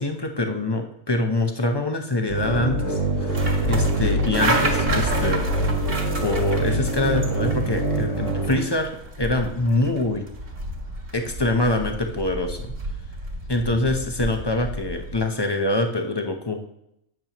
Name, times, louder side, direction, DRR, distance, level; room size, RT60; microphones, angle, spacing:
voice 1, 0.0-5.4 6.2-8.9 9.2-10.3 11.1-12.7 13.5-16.7, left 2 dB, 20° left, 4 dB, 0.7 m, -25 dB
sound 1, 2.3-8.6, right 1 dB, 60° left, 2.9 m, -24 dB
sound 2, 3.0-15.3, right 1 dB, 40° right, 1.7 m, -31 dB
12.5 x 8.7 x 3.0 m, 0.78 s
omnidirectional pair, 1.5 m